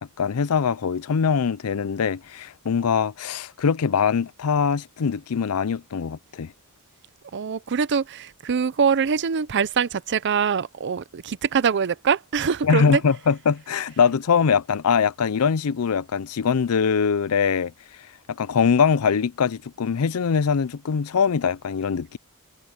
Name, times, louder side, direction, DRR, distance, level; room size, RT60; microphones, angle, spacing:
voice 1, 0.2-6.5 12.6-17.7 18.3-22.2, left 6 dB, 75° left, 0.5 m, -22 dB
voice 2, 7.3-13.0, right 6 dB, 55° right, 0.5 m, -23 dB
head